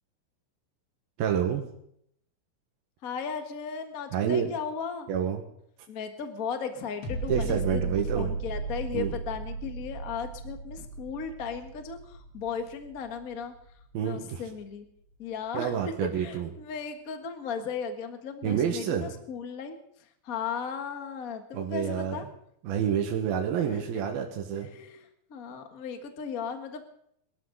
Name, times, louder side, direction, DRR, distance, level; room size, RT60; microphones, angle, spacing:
voice 1, 1.2-1.6 4.1-4.5 5.1-5.4 7.3-8.3 8.9-9.1 13.9-14.4 15.5-16.5 18.4-19.1 21.5-22.3 22.6-24.7, right 8 dB, 80° right, 2 dB, 3.2 m, -28 dB
voice 2, 3.0-5.1 5.9-13.5 14.0-14.9 15.2-22.2 23.6-23.8 24.5-26.9, left 6 dB, 70° left, 6 dB, 0.8 m, -36 dB
sound 1, 7.0-14.1 14.5-14.6, right 3 dB, 40° left, 3.2 m, -35 dB
22.5 x 13.0 x 3.9 m, 0.71 s
omnidirectional pair, 4.2 m